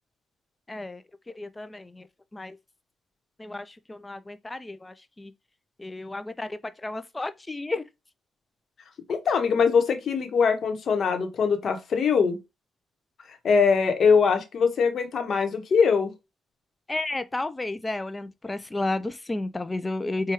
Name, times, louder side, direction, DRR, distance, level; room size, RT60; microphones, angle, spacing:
voice 1, 0.7-1.0 1.4-2.1 2.3-2.6 3.4-5.3 5.8-7.8 16.9-20.3, left 2 dB, 20° left, 0.3 m, -32 dB
voice 2, 9.1-12.4 13.4-16.1, left 5 dB, 60° left, 0.9 m, -22 dB
4.6 x 2.2 x 2.9 m
cardioid pair, 75°, 0 cm